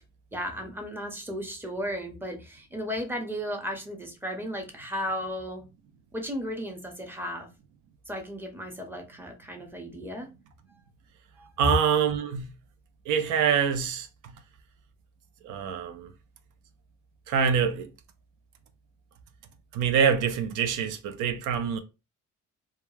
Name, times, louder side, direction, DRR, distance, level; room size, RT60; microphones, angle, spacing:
voice 1, 0.3-5.6 6.1-7.5 8.1-10.3 11.4-11.5, equal, 5° right, 0.8 m, -35 dB
voice 2, 11.6-12.5 13.1-14.3 15.4-16.1 17.3-17.9 19.7-21.8, right 7 dB, 90° right, 0.5 m, -25 dB
2.3 x 2.1 x 3.1 m
cardioid pair, 90°, 30 cm